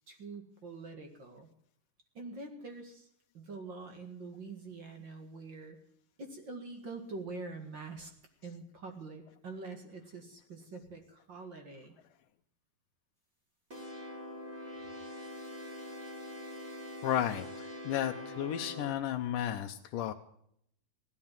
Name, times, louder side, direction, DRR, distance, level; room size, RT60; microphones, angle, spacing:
voice 1, 0.1-1.5 2.1-3.1 3.3-5.8 6.2-8.1 8.4-12.0, right 3 dB, 40° right, 5 dB, 2.0 m, -45 dB
sound 1, 13.7-18.9, left 1 dB, 20° right, 3.9 m, -44 dB
voice 2, 17.0-20.1, left 11 dB, 75° left, 3 dB, 2.3 m, -33 dB
16.0 x 12.0 x 7.3 m, 0.69 s
omnidirectional pair, 4.0 m